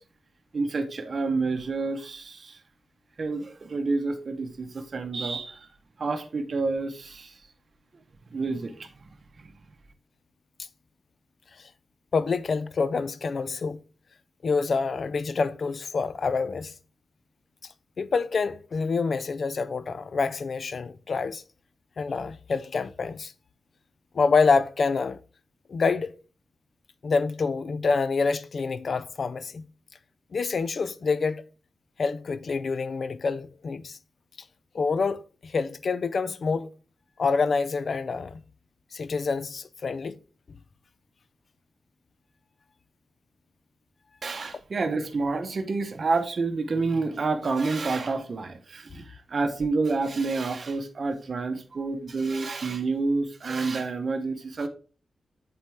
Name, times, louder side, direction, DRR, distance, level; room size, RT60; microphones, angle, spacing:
voice 1, 0.5-2.6 3.2-5.7 6.0-7.4 8.3-9.0 9.4-9.5 44.2-54.7, right 3 dB, 45° right, 0.7 m, -29 dB
voice 2, 12.1-13.8 14.4-16.7 18.0-21.4 22.0-23.3 24.1-25.2 25.7-26.1 27.0-29.7 30.3-31.4 32.0-34.0 34.7-36.7 37.2-38.4 38.9-40.2, left 4 dB, 50° left, 0.4 m, -27 dB
7.5 x 4.3 x 3.4 m
wide cardioid pair, 145°, 0 cm